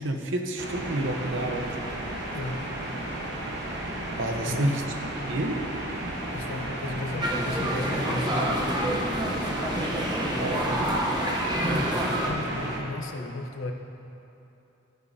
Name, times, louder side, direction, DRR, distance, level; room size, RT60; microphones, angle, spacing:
voice 1, 0.0-1.7 4.2-4.8 5.3-5.6 10.4-10.9, right 1 dB, 70° right, 4 dB, 0.9 m, -29 dB
sound 1, 0.6-12.8, right 1 dB, 55° right, 1.2 m, -34 dB
voice 2, 2.3-2.7 4.4-4.8 6.3-8.7 12.0-13.7, left 2 dB, 85° left, 3 dB, 0.8 m, -34 dB
sound 2, 7.2-12.3, equal, 20° right, 0.9 m, -27 dB
14.0 x 10.0 x 2.8 m, 3.0 s
head